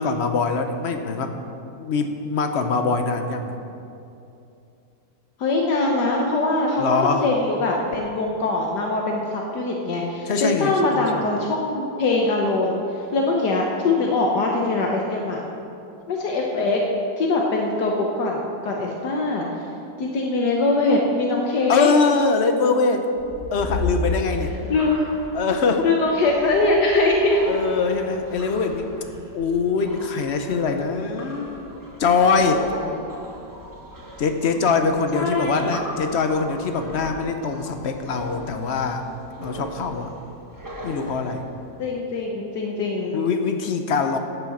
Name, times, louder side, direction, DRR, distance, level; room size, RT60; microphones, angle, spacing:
voice 1, 0.0-1.3 1.8-3.6 6.8-7.3 10.3-11.2 21.7-23.1 23.5-24.5 25.3-25.9 27.5-28.9 29.3-31.7 32.0-32.7 34.2-39.0 39.4-40.1 40.8-41.4 43.1-44.2, left 4 dB, 50° left, 6 dB, 0.9 m, -23 dB
voice 2, 5.4-15.4 16.1-16.8 17.2-19.5 20.0-21.9 24.7-25.0 25.8-27.4 35.1-35.8 41.8-43.2, left 2 dB, 75° left, 0 dB, 1.5 m, -22 dB
sound 1, 23.1-41.9, left 2 dB, 10° right, 1.3 m, -36 dB
11.5 x 6.7 x 7.2 m, 2.7 s
omnidirectional pair, 1.8 m